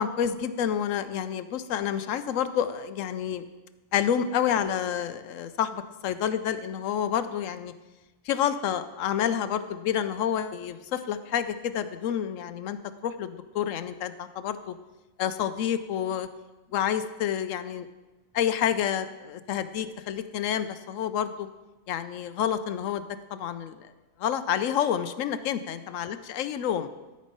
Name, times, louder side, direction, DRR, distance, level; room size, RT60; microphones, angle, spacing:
voice 1, 0.0-3.4 3.9-7.7 8.2-12.8 13.0-14.8 15.2-16.3 16.7-17.9 18.3-21.5 21.9-23.9 24.2-26.1 26.4-26.9, left 9 dB, 70° left, 11 dB, 0.9 m, -29 dB
12.5 x 5.4 x 5.3 m, 1.1 s
omnidirectional pair, 1.5 m